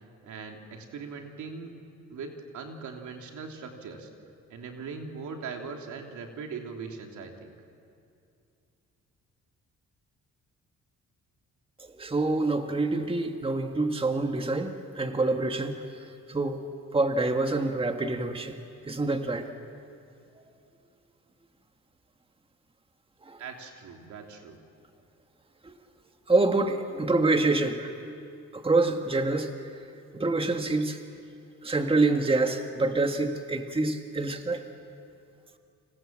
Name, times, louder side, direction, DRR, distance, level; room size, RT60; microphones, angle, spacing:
voice 1, 0.2-1.7 2.1-4.1 4.5-7.5 23.4-24.6, right 5 dB, 75° right, 2 dB, 3.3 m, -40 dB
voice 2, 12.0-15.8 16.3-16.6 16.9-18.6 18.9-19.5 23.3-23.4 25.6-25.7 26.3-27.9 28.5-29.5 30.1-31.0 31.6-34.7, right 2 dB, 20° right, 5 dB, 1.7 m, -26 dB
30.0 x 26.0 x 7.6 m, 2.5 s
cardioid pair, 90°, 30 cm